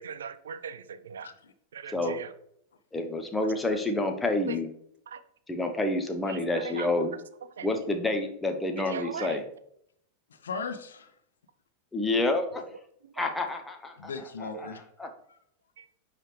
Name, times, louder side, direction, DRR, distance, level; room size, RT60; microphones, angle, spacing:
voice 1, 0.0-1.3 1.7-2.3 4.5-4.6 5.1-5.2 6.3-6.9 7.6-7.7 8.9-9.4 13.2-13.3 14.5-14.7 15.8-15.9, right 7 dB, 65° right, 13 dB, 0.4 m, -39 dB
voice 2, 2.9-4.7 5.5-7.1 7.6-9.4 11.9-12.6 13.1-14.1 14.4-14.5 15.0-15.1, left 2 dB, 10° left, 5 dB, 0.8 m, -28 dB
voice 3, 10.3-11.1 14.0-14.8 15.3-15.4, left 5 dB, 65° left, 8 dB, 0.6 m, -38 dB
9.7 x 3.3 x 3.2 m, 0.71 s
figure-of-eight pair, 90°, 0 cm